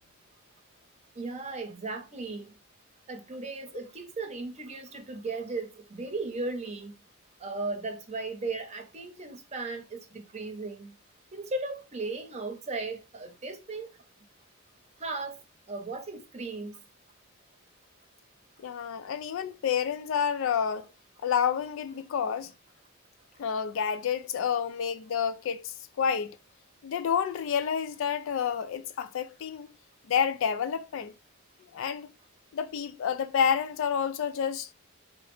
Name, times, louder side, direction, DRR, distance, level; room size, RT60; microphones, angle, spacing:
voice 1, 1.2-2.5 3.1-6.9 7.4-10.9 11.3-13.9 15.0-15.4 15.7-16.8, right 3 dB, 35° right, 0.7 m, -36 dB
voice 2, 18.6-20.9 21.2-22.5 23.4-26.4 26.8-29.7 30.1-31.1 31.7-32.1 32.5-34.7, left 7 dB, 65° left, 0.3 m, -29 dB
3.8 x 2.0 x 3.1 m
head